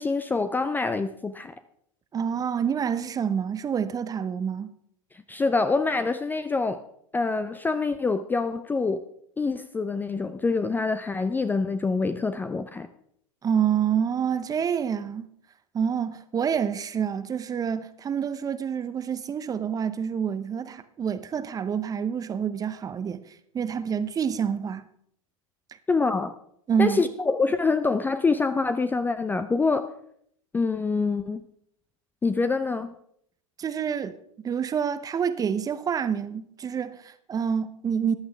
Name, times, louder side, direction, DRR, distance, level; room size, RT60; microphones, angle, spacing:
voice 1, 0.0-1.5 5.3-6.8 7.1-9.0 9.4-12.9 25.9-26.3 26.8-29.9 30.5-31.4 32.2-32.9, left 4 dB, 10° left, 0.5 m, -25 dB
voice 2, 2.1-4.7 13.4-15.3 15.7-24.8 26.7-27.0 33.6-34.2 34.4-38.1, right 7 dB, 20° right, 0.7 m, -27 dB
14.5 x 11.0 x 3.4 m
figure-of-eight pair, 95°, 18 cm